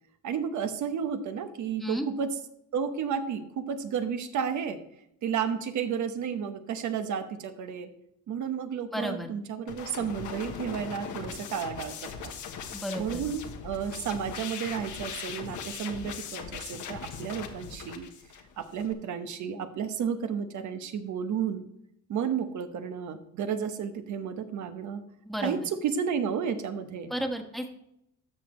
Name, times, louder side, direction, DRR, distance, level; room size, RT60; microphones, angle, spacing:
voice 1, 0.2-2.3 2.7-4.8 5.2-7.9 8.3-12.3 13.0-18.1 18.6-21.6 22.1-25.0 25.4-27.1, right 7 dB, 75° right, 8 dB, 1.1 m, -32 dB
voice 2, 8.9-9.3 12.7-13.2 25.2-25.5 27.1-27.7, equal, ahead, 3 dB, 1.3 m, -32 dB
sound 1, 9.7-18.9, left 6 dB, 75° left, 1.2 m, -40 dB
13.0 x 6.2 x 3.2 m, 0.78 s
cardioid pair, 90°, 30 cm